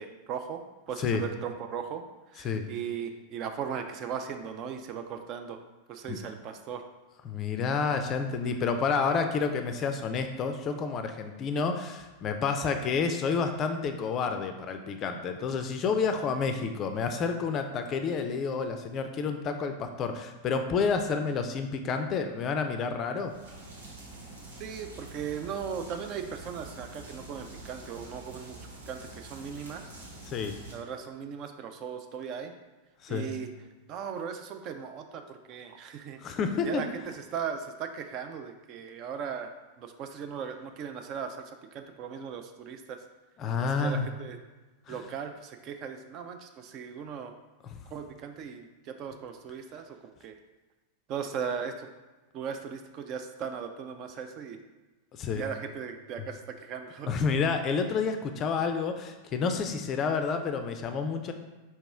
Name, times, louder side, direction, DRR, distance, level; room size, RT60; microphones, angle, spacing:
voice 1, 0.0-2.0 2.3-5.6 5.9-6.8 24.6-28.6 28.9-29.8 30.7-32.5 33.1-33.5 33.9-36.2 36.6-39.5 39.8-43.0 43.6-44.4 44.9-47.3 47.9-50.3 51.1-51.9 52.3-54.6 55.3-57.1, right 7 dB, 40° right, 6 dB, 0.3 m, -38 dB
voice 2, 7.3-23.4 30.3-30.5 33.0-33.3 36.2-36.8 43.4-44.1 44.9-45.0 47.7-47.8 55.1-55.4 57.1-61.3, left 5 dB, 30° left, 7 dB, 0.4 m, -29 dB
sound 1, 23.2-30.7, right 2 dB, 70° right, 0.9 m, -46 dB
4.4 x 2.9 x 3.4 m, 1.2 s
figure-of-eight pair, 90°, 0 cm